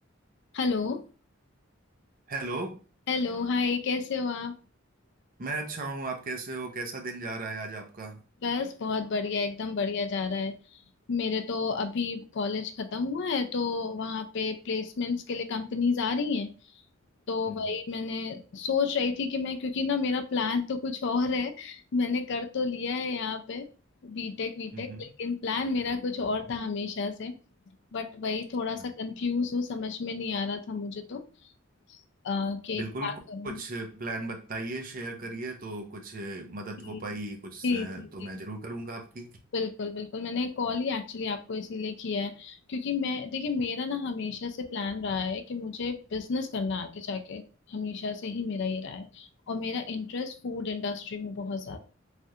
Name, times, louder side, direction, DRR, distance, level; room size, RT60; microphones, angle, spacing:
voice 1, 0.5-1.0 3.1-4.5 8.4-10.6 11.1-16.5 17.3-23.7 24.0-27.4 27.9-31.2 31.9-32.0 32.2-33.6 36.9-37.0 37.6-37.9 38.2-38.3 39.5-47.4 47.7-51.8, left 4 dB, 60° left, 7 dB, 0.4 m, -31 dB
voice 2, 2.3-2.8 5.4-8.2 17.5-17.7 24.7-25.1 28.8-28.9 32.7-33.2 33.4-39.3, right 2 dB, 45° right, 3 dB, 0.6 m, -36 dB
3.3 x 2.4 x 2.7 m, 0.35 s
head